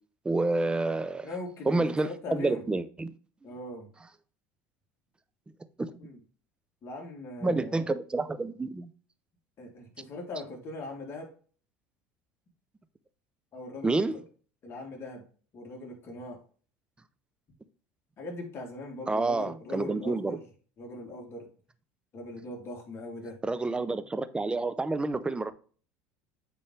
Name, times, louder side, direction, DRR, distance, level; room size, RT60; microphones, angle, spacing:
voice 1, 0.2-1.3 1.7-3.1 5.8-5.9 7.4-8.9 13.8-14.1 19.1-20.4 23.4-25.5, right 3 dB, 15° right, 0.7 m, -29 dB
voice 2, 1.2-2.7 3.4-3.9 6.0-6.2 6.8-7.9 9.6-11.3 13.5-14.2 14.6-15.2 15.5-16.4 18.2-20.4 20.8-21.5 22.1-23.4, left 2 dB, 40° left, 3.2 m, -40 dB
8.7 x 4.3 x 3.3 m
supercardioid pair, 95°, 7 cm